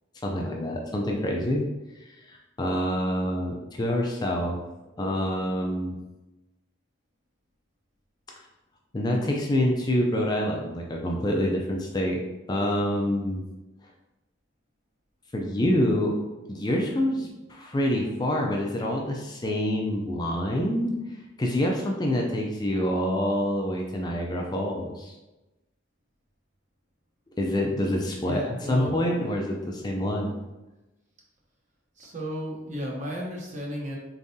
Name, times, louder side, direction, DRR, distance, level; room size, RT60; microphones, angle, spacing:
voice 1, 0.2-1.7 2.0-4.6 5.0-6.0 8.9-12.2 12.5-13.4 15.3-16.2 16.5-20.9 21.4-25.1 27.4-30.4, equal, 20° left, 0 dB, 0.4 m, -26 dB
voice 2, 28.2-29.0 32.0-34.0, equal, 40° right, -2 dB, 0.9 m, -34 dB
3.9 x 3.6 x 2.7 m, 1.0 s
head